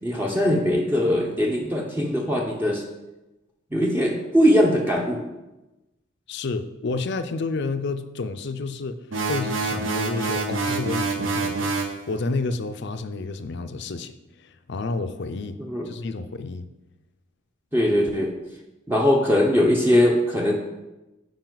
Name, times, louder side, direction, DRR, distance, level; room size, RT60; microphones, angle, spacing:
voice 1, 0.0-2.8 3.7-5.2 15.6-15.9 17.7-18.3 18.9-20.6, equal, 10° right, 0 dB, 0.6 m, -21 dB
voice 2, 6.3-9.0 9.3-11.8 12.1-14.1 14.4-15.6 15.9-16.7, left 3 dB, 60° left, 10 dB, 0.5 m, -30 dB
sound 1, 9.1-12.0, right 3 dB, 80° right, 1.0 m, -26 dB
9.0 x 5.1 x 3.9 m, 1.0 s
head